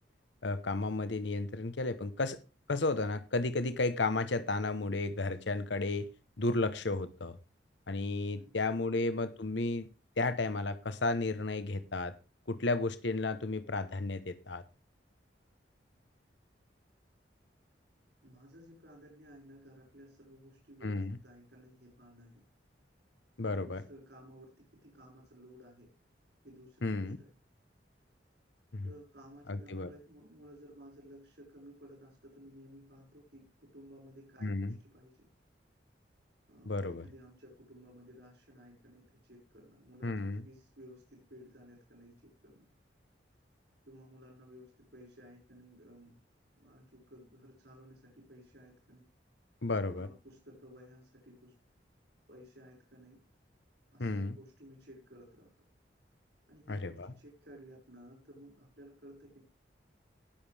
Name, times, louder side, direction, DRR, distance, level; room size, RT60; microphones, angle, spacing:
voice 1, 0.4-2.4 2.7-6.1 6.4-7.4 7.9-9.9 10.2-12.1 12.5-14.6 20.8-21.1 23.4-23.8 26.8-27.2 28.7-28.9 29.5-29.9 34.4-34.7 36.7-37.0 40.0-40.4 49.6-50.1 54.0-54.4 56.7-57.1, left 2 dB, 75° left, 12 dB, 0.9 m, -33 dB
voice 2, 18.2-22.4 23.4-25.9 26.4-27.3 28.8-35.3 36.5-42.6 43.9-46.2 46.6-49.1 49.9-51.5 52.3-53.2 53.9-55.5 56.5-59.4, equal, 70° right, -1 dB, 5.7 m, -55 dB
19.0 x 7.3 x 3.4 m, 0.30 s
head